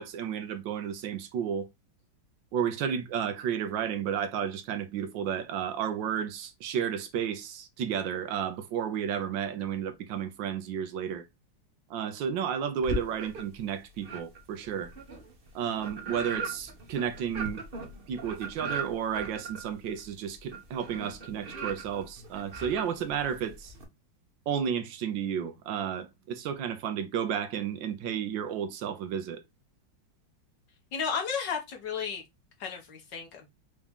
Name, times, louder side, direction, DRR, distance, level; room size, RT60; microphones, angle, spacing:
voice 1, 0.0-1.7 2.5-11.3 11.9-14.9 15.5-17.6 18.1-23.7 24.5-29.4, right 8 dB, 75° right, 1.4 m, -32 dB
sound 1, 12.8-13.6 14.0-23.8, right 3 dB, 40° right, 0.9 m, -39 dB
voice 2, 30.9-32.2 32.6-33.5, left 6 dB, 65° left, 1.8 m, -33 dB
4.8 x 2.8 x 3.5 m
omnidirectional pair, 2.1 m